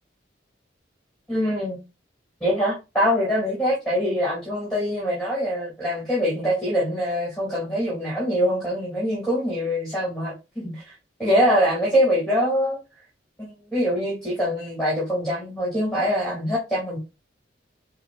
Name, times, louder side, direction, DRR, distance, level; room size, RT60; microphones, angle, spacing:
voice 1, 1.3-1.8 2.4-10.9 11.2-12.8 13.4-17.0, equal, 5° left, 2.9 m, -24 dB
6.5 x 3.0 x 2.6 m
head